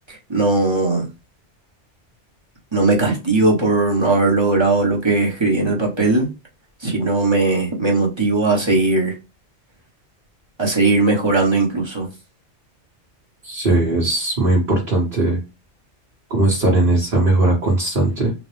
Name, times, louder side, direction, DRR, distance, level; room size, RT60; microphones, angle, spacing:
voice 1, 0.1-1.1 2.7-6.3 6.8-9.1 10.6-12.1, right 3 dB, 25° right, 1.1 m, -18 dB
voice 2, 13.4-15.4 16.3-18.3, right 2 dB, 45° right, 1.4 m, -18 dB
4.0 x 2.2 x 3.2 m
omnidirectional pair, 1.2 m